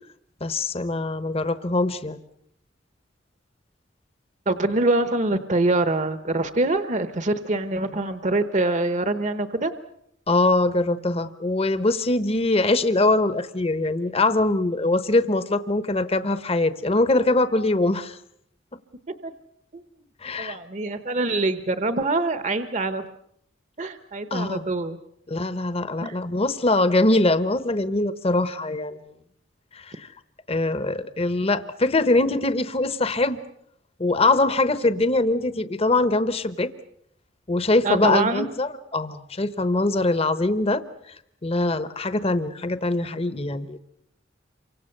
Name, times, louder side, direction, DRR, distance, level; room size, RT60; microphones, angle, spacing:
voice 1, 0.4-2.2 10.3-18.2 20.2-20.6 24.3-24.6 25.3-29.1 29.7-30.1 30.5-33.4 34.0-36.7 37.5-41.1 41.4-43.8, left 2 dB, 30° left, 13 dB, 1.0 m, -23 dB
voice 2, 4.5-9.7 19.1-19.3 19.7-19.8 20.4-23.0 23.8-25.0 26.0-26.2 37.8-38.5, right 2 dB, 40° right, 11 dB, 1.0 m, -24 dB
28.0 x 25.0 x 6.7 m, 0.73 s
head